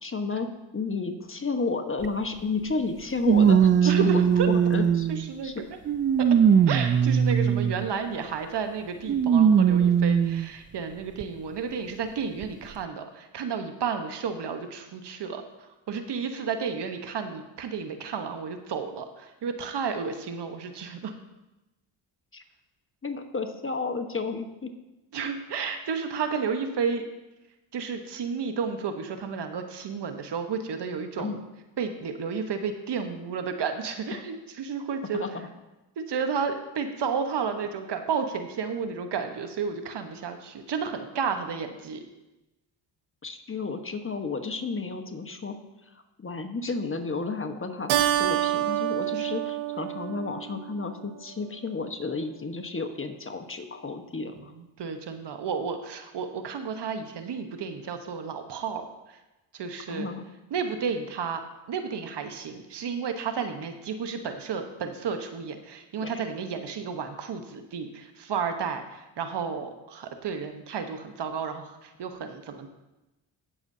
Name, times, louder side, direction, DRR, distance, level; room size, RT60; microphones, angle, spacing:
voice 1, 0.0-5.1 5.4-5.6 22.3-22.4 23.0-24.7 31.2-31.4 35.1-35.3 43.2-45.6 45.9-46.0 46.2-54.5 59.9-60.2 66.0-66.2, left 4 dB, 25° left, 6 dB, 1.2 m, -32 dB
sound 1, 2.0-2.1 3.2-5.3 5.9-7.9 9.1-10.5 11.2-11.3 12.4-12.5, right 8 dB, 30° right, 0.3 m, -20 dB
voice 2, 3.8-4.5 5.1-5.6 6.2-6.3 6.7-15.4 15.9-21.1 25.1-27.0 27.7-31.3 31.8-35.2 36.0-42.0 49.1-49.3 54.5-58.8 59.5-60.1 60.5-61.4 61.7-72.7, right 6 dB, 55° right, 6 dB, 1.2 m, -32 dB
Keyboard (musical), 47.9-50.8, right 13 dB, 90° right, 0.8 m, -27 dB
17.5 x 6.9 x 2.8 m, 1.0 s
supercardioid pair, 65°, 48 cm